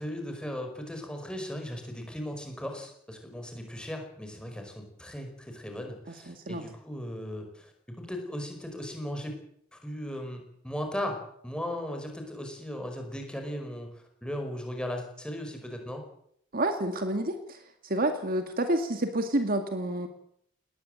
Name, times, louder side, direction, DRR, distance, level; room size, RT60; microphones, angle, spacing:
voice 1, 0.0-9.4 9.7-16.0, equal, 5° left, 4 dB, 5.0 m, -37 dB
voice 2, 6.3-6.7 16.5-20.1, right 1 dB, 45° right, 7 dB, 2.1 m, -29 dB
20.0 x 19.0 x 7.9 m, 0.69 s
head